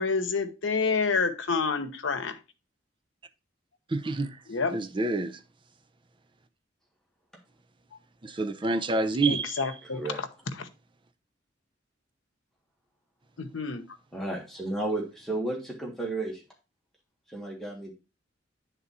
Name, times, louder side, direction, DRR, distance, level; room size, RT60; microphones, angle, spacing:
voice 1, 0.0-2.4 4.5-4.8 9.3-10.3 10.6-10.7 13.4-13.8, left 4 dB, 85° left, 0.9 m, -28 dB
voice 2, 3.9-4.4 4.7-5.4 8.2-9.6, right 2 dB, 25° right, 0.5 m, -28 dB
voice 3, 14.1-16.4 17.3-17.9, right 2 dB, ahead, 1.5 m, -33 dB
9.4 x 3.7 x 4.1 m
head